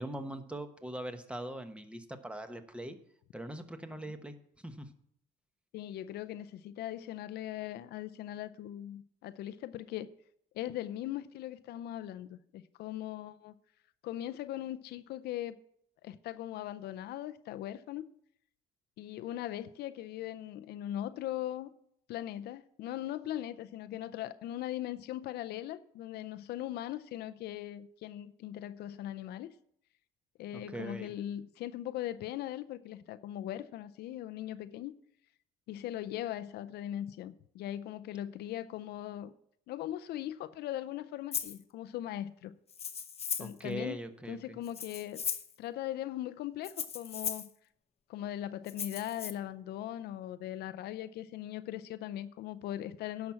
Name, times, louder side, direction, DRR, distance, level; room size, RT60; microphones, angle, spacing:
voice 1, 0.0-3.0 3.3-4.3 4.6-4.9 30.5-31.1 43.4-44.6, right 1 dB, 5° right, 1.1 m, -41 dB
voice 2, 5.7-10.1 10.5-13.5 14.0-15.5 16.0-18.1 19.0-21.7 22.1-29.5 30.4-34.9 35.7-39.3 39.7-42.5 43.4-45.2 45.6-47.5 48.1-53.3, left 12 dB, 75° left, 0.5 m, -39 dB
Rattle (instrument), 41.3-41.6 42.7-43.6 44.6-45.5 46.6-47.5 48.7-49.3, left 7 dB, 35° left, 0.8 m, -37 dB
10.5 x 6.0 x 7.3 m
cardioid pair, 110°, 17 cm